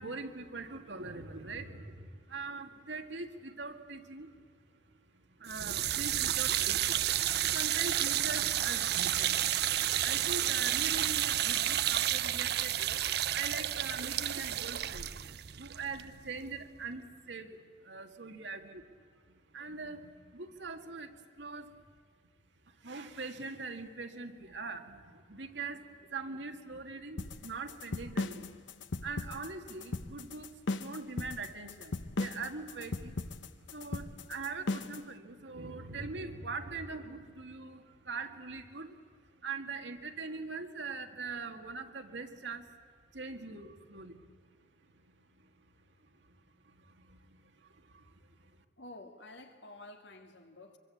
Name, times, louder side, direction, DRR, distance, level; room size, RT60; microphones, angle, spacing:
voice 1, 0.0-7.0 7.5-15.2 15.5-18.9 19.2-21.8 22.6-28.5 28.9-42.7 43.1-44.6 44.8-45.7 46.0-48.6, right 4 dB, 75° right, 2.0 m, -43 dB
cold water tap running water into sink, 5.5-16.6, right 12 dB, 60° right, 0.6 m, -31 dB
sound 1, 27.2-35.1, left 3 dB, 90° left, 0.9 m, -37 dB
voice 2, 48.8-50.8, left 2 dB, 75° left, 2.1 m, -50 dB
24.5 x 23.5 x 8.5 m
head